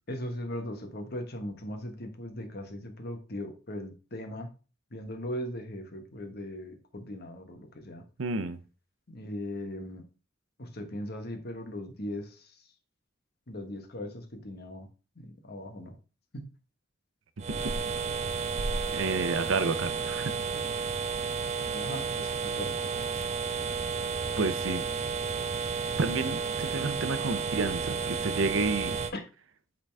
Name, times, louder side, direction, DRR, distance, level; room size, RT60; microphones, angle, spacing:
voice 1, 0.1-4.5 4.9-8.0 9.1-10.0 10.6-12.6 13.5-14.9 15.2-15.9 16.3-16.5 21.7-22.8 29.1-29.2, left 1 dB, 55° left, 5 dB, 1.3 m, -39 dB
voice 2, 8.2-8.6 17.4-17.5 17.7-17.8 18.9-20.3 24.4-24.9 26.0-29.0, right 3 dB, 85° right, 11 dB, 0.7 m, -30 dB
sound 1, 17.4-29.1, right 5 dB, 35° right, 0.6 m, -32 dB
8.8 x 4.0 x 3.4 m, 0.34 s
head